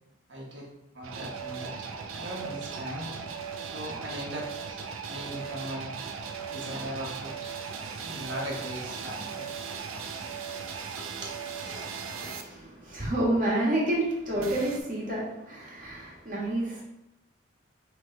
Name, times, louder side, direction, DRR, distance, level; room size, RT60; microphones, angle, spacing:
voice 1, 0.3-0.7 0.9-1.8 2.1-3.2 3.6-5.9 6.5-7.5 8.0-9.6 11.0-11.4, equal, 65° right, -2 dB, 1.2 m, -39 dB
sound 1, 1.0-12.4 14.4-14.8, right 6 dB, 90° right, 0.4 m, -38 dB
voice 2, 11.7-16.8, right 1 dB, 40° right, -6 dB, 1.5 m, -29 dB
3.8 x 3.2 x 4.3 m, 0.91 s
head